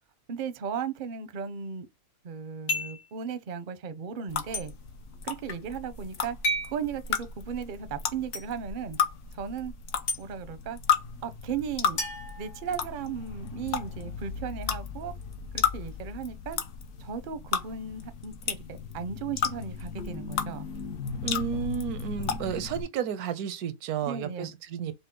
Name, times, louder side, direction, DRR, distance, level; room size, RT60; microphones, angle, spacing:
voice 1, 0.3-1.9 2.2-4.7 5.2-6.4 6.6-9.0 9.3-9.7 10.2-10.8 11.2-12.0 12.4-15.1 15.5-16.6 17.0-20.7 24.0-24.5, right 7 dB, 50° right, 0.6 m, -36 dB
sound 1, 2.7-3.1 4.5-4.7 6.4-6.7 8.3-8.5 10.1-10.2 12.0-13.1, left 1 dB, 80° left, 1.9 m, -31 dB
sound 2, 4.3-22.8, left 7 dB, 60° left, 0.9 m, -34 dB
voice 2, 21.2-24.9, right 8 dB, 85° right, 1.1 m, -32 dB
5.4 x 2.1 x 3.7 m
omnidirectional pair, 1.6 m